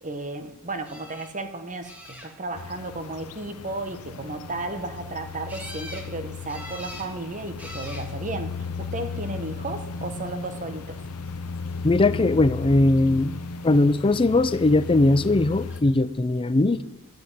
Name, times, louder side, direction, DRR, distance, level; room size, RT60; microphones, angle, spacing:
voice 1, 0.0-11.0, right 2 dB, 35° right, 9 dB, 1.3 m, -34 dB
sound 1, 0.8-1.3 1.8-2.6 5.5-6.1 6.5-7.1 7.6-8.1 9.0-9.5 15.7-15.8 16.1-16.2, left 1 dB, 5° right, 2.5 m, -42 dB
sound 2, 2.6-15.8, left 4 dB, 90° left, 0.8 m, -36 dB
voice 2, 11.8-13.3 13.6-16.8, left 2 dB, 25° left, 12 dB, 0.5 m, -20 dB
10.5 x 8.5 x 9.4 m, 0.94 s
head